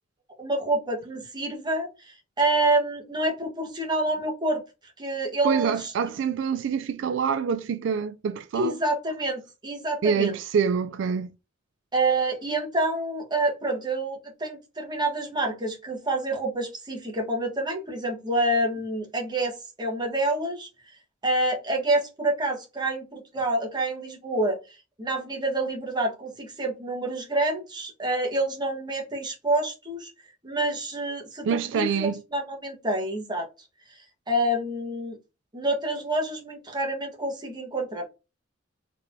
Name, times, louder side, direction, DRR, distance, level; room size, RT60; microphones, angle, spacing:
voice 1, 0.4-4.6 5.0-5.9 8.5-10.4 11.9-20.7 21.2-24.6 25.0-30.1 30.4-33.5 34.3-35.2 35.5-38.1, right 2 dB, 25° right, 1.3 m, -27 dB
voice 2, 5.4-8.8 10.0-11.3 31.4-32.2, right 6 dB, 70° right, 0.3 m, -26 dB
4.1 x 3.3 x 2.6 m
head